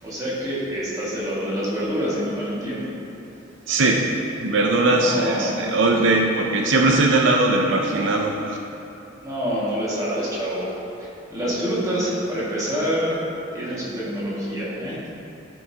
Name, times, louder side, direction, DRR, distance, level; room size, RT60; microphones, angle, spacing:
voice 1, 0.0-2.9 4.8-5.6 9.2-10.7 11.0-13.2 13.5-15.1, equal, 20° right, -8 dB, 1.9 m, -26 dB
voice 2, 3.7-8.6, right 2 dB, 80° right, 1 dB, 0.6 m, -20 dB
12.5 x 5.5 x 2.8 m, 2.8 s
head